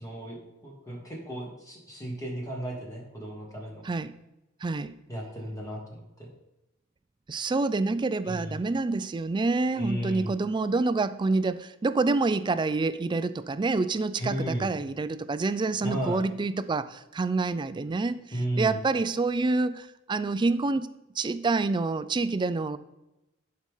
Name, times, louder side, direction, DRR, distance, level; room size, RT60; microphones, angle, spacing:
voice 1, 0.0-3.8 5.1-6.3 8.2-8.6 9.7-10.3 14.2-14.8 15.8-16.2 18.3-18.8, right 1 dB, 15° left, -2 dB, 1.5 m, -34 dB
voice 2, 4.6-4.9 7.3-18.2 18.6-20.9 21.2-22.8, right 3 dB, 25° right, 14 dB, 0.3 m, -27 dB
11.5 x 4.8 x 3.7 m, 0.95 s
head